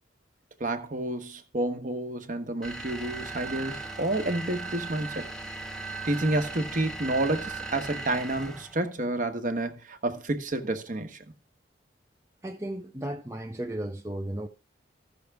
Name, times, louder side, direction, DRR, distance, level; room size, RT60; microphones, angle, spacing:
voice 1, 0.6-5.3 6.0-11.2, right 2 dB, 40° right, 1.1 m, -30 dB
sound 1, 2.6-8.8, right 3 dB, 5° left, 0.9 m, -37 dB
voice 2, 12.4-14.5, right 1 dB, 15° right, 0.5 m, -34 dB
14.0 x 6.3 x 3.4 m
head